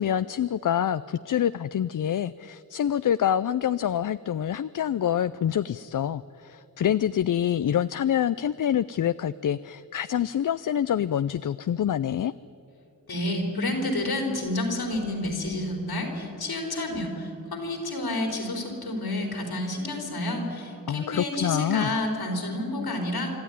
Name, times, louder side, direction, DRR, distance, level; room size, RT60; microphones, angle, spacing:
voice 1, 0.0-12.3 20.9-21.9, left 10 dB, 60° left, 14 dB, 0.5 m, -26 dB
voice 2, 13.1-23.4, left 1 dB, 85° left, 2 dB, 4.0 m, -29 dB
26.0 x 12.5 x 10.0 m, 2.7 s
cardioid pair, 50°, 37 cm